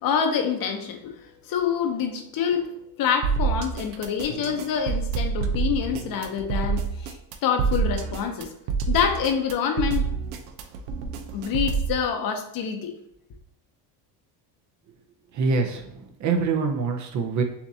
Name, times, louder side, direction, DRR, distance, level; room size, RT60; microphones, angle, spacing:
voice 1, 0.0-1.1 1.5-2.7 3.0-8.5 8.9-10.1 11.3-12.9, left 7 dB, 45° left, 5 dB, 0.8 m, -26 dB
sound 1, 3.2-12.0, right 5 dB, 80° right, 0.8 m, -27 dB
voice 2, 15.3-17.4, right 4 dB, 40° right, 5 dB, 0.6 m, -25 dB
6.9 x 2.5 x 2.7 m, 0.74 s
cardioid pair, 120°, 47 cm